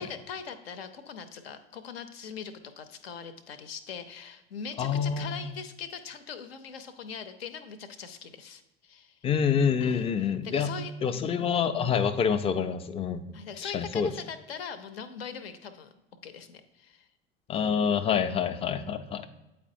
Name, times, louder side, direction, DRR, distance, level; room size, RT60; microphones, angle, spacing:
voice 1, 0.0-9.2 9.8-11.4 13.3-15.9 16.2-17.1, left 6 dB, 75° left, 10 dB, 0.6 m, -41 dB
voice 2, 4.8-5.4 9.2-10.7 11.0-13.4 13.6-14.1 17.5-19.3, left 7 dB, 20° left, 10 dB, 0.4 m, -27 dB
8.5 x 4.2 x 2.6 m, 0.99 s
figure-of-eight pair, 70°, 31 cm